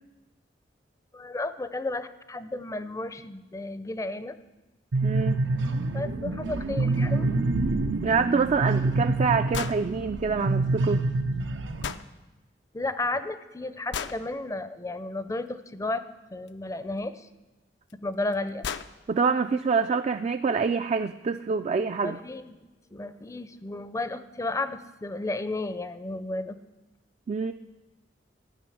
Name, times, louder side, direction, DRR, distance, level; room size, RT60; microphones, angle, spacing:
voice 1, 1.1-4.3 5.7-7.3 12.7-16.0 16.3-17.3 17.9-18.6 22.0-26.6, left 2 dB, 20° left, 12 dB, 0.5 m, -33 dB
sound 1, 4.9-11.9, right 2 dB, 90° right, 0.7 m, -27 dB
voice 2, 5.0-5.4 8.0-11.0 19.1-22.2 27.3-27.5, right 5 dB, 40° right, 8 dB, 0.3 m, -26 dB
sound 2, 9.5-9.8 11.8-12.1 13.9-14.2 16.5-16.6 17.9-18.0 18.3-18.4 18.6-18.9, left 7 dB, 70° left, 0.5 m, -33 dB
12.0 x 6.1 x 9.1 m, 1.1 s
head